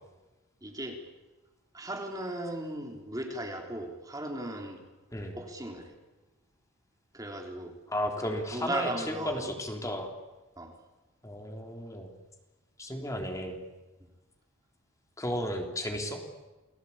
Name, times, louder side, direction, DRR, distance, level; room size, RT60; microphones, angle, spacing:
voice 1, 0.6-1.0 1.7-4.8 5.3-5.9 7.1-7.7 8.5-9.5 10.6-10.7, right 1 dB, 15° right, 3 dB, 3.4 m, -36 dB
voice 2, 7.9-10.1 11.2-12.1 12.8-13.6 15.2-16.2, equal, 15° left, 3 dB, 3.5 m, -34 dB
30.0 x 21.0 x 8.7 m, 1.2 s
head